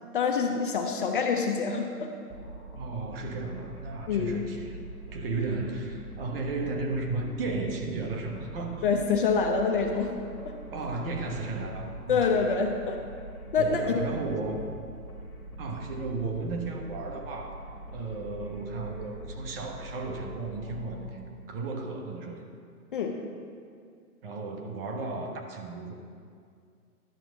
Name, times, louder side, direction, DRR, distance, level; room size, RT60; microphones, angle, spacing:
voice 1, 0.1-2.1 4.1-4.4 8.8-10.2 10.4-10.6 12.1-13.0 13.5-14.0 22.9-23.2, left 5 dB, 35° left, 3 dB, 0.6 m, -26 dB
sound 1, 2.3-21.1, right 1 dB, 10° left, 0.9 m, -43 dB
voice 2, 2.8-8.8 10.7-12.7 13.5-14.6 15.6-17.6 17.9-22.4 24.2-25.9, right 3 dB, 40° right, 2 dB, 1.2 m, -34 dB
12.0 x 4.6 x 6.2 m, 2.3 s
hypercardioid pair, 145°, 45 cm